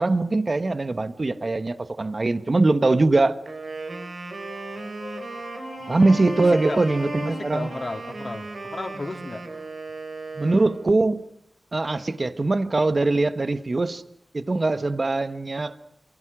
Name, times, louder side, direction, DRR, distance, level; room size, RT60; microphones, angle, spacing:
voice 1, 0.0-3.4 5.9-7.7 10.4-11.2 11.7-14.0 14.3-15.8, right 2 dB, 40° right, 1.4 m, -22 dB
Wind instrument woodwind instrument, 3.5-11.1, right 3 dB, 60° right, 5.1 m, -36 dB
sound 1, 3.8-9.5, left 3 dB, 65° left, 2.3 m, -42 dB
voice 2, 5.8-6.1 6.5-6.8 7.3-9.4, left 2 dB, 40° left, 4.0 m, -34 dB
28.5 x 27.0 x 6.2 m
wide cardioid pair, 110°, 0 cm